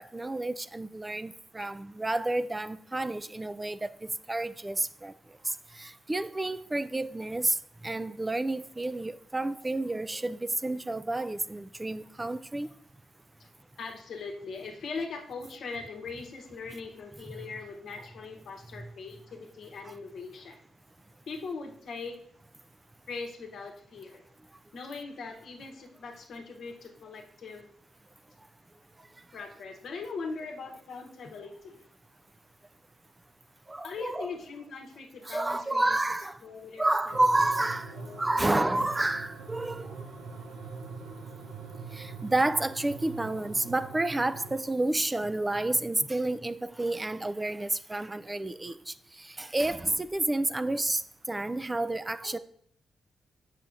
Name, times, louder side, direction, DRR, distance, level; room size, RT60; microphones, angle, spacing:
voice 1, 0.0-3.9 4.3-5.1 5.4-7.6 7.8-12.7 33.7-34.3 35.3-36.4 36.8-40.0 41.9-51.0 51.3-52.4, right 2 dB, 20° right, 0.3 m, -30 dB
voice 2, 9.8-10.2 13.4-13.5 13.8-20.6 21.3-22.2 23.1-24.3 24.7-27.7 29.3-31.9 33.8-36.0 36.4-37.5 37.9-38.7 51.4-51.5 52.2-52.4, left 4 dB, 70° left, 0.9 m, -41 dB
sound 1, 37.1-44.5, right 4 dB, 85° right, 0.6 m, -43 dB
6.7 x 5.7 x 2.5 m
supercardioid pair, 50°, 0 cm